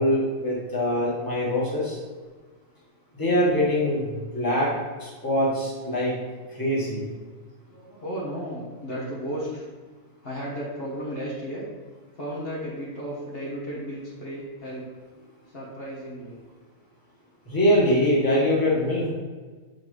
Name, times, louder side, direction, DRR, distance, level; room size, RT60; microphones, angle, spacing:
voice 1, 0.0-2.0 3.2-4.7 5.0-6.1 6.5-7.0 17.4-19.1, equal, 15° left, -6 dB, 1.6 m, -23 dB
voice 2, 5.5-5.9 6.8-7.1 7.7-9.7 10.2-11.7 12.1-14.9 15.5-16.4, equal, 45° left, -7 dB, 1.5 m, -34 dB
6.9 x 4.4 x 3.2 m, 1.4 s
omnidirectional pair, 1.4 m